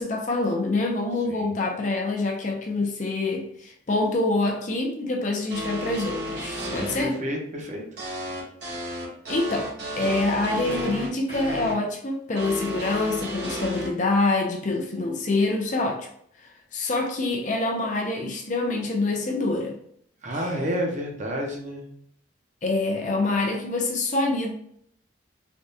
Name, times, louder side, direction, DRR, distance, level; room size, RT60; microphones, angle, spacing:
voice 1, 0.0-7.2 9.3-16.1 16.7-19.8 22.6-24.5, left 2 dB, 40° left, 1 dB, 0.5 m, -26 dB
sound 1, 5.5-7.0 8.0-11.7 12.4-13.9, equal, 60° right, 1.1 m, -32 dB
voice 2, 6.5-7.8 20.2-21.9, equal, 40° right, 0 dB, 0.7 m, -30 dB
3.4 x 2.3 x 2.7 m, 0.66 s
head